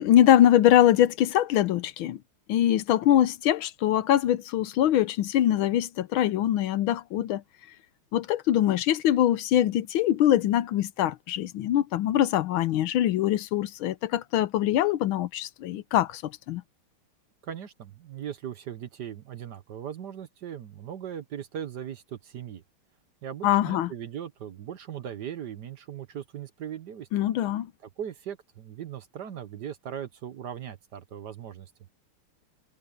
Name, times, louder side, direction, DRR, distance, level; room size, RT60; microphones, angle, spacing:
voice 1, 0.0-2.2 2.5-7.4 8.1-16.6 23.4-23.9 27.1-27.7, left 12 dB, 75° left, 1.5 m, -23 dB
voice 2, 17.4-22.6 23.2-27.1 28.0-31.7, right 9 dB, 55° right, 1.4 m, -39 dB
omnidirectional pair, 2.4 m